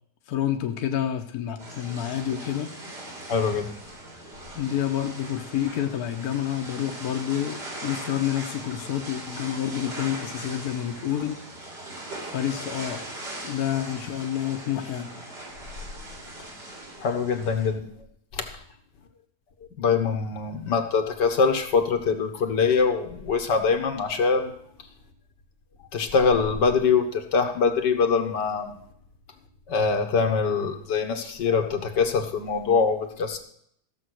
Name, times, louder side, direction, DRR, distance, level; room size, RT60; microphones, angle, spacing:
voice 1, 0.3-2.7 4.5-11.4 12.3-13.1 13.4-15.1, left 11 dB, 65° left, 5 dB, 1.4 m, -28 dB
sound 1, 1.6-17.7, right 1 dB, 75° right, 4.7 m, -40 dB
voice 2, 3.3-3.7 17.0-17.9 18.3-18.5 19.8-24.5 25.9-28.7 29.7-33.4, left 5 dB, 80° left, 5 dB, 2.0 m, -23 dB
15.0 x 7.1 x 6.3 m, 0.66 s
omnidirectional pair, 1.8 m